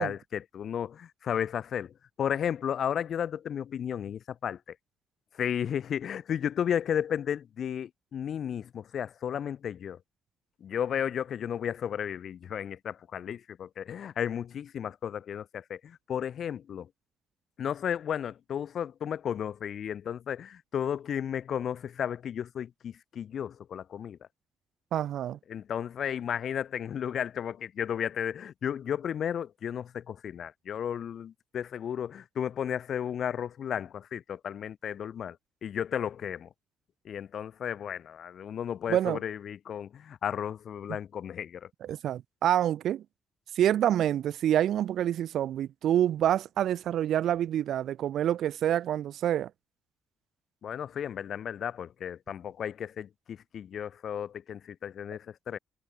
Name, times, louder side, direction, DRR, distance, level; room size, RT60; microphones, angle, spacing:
voice 1, 0.0-4.6 5.4-10.0 10.6-16.9 17.6-24.2 25.5-35.4 35.6-36.5 37.1-41.7 50.6-55.6, left 9 dB, 50° left, 7.4 m, -33 dB
voice 2, 24.9-25.4 38.9-39.2 41.8-43.0 43.5-49.5, right 11 dB, 65° right, 6.8 m, -27 dB
cardioid pair, 180°, 0 cm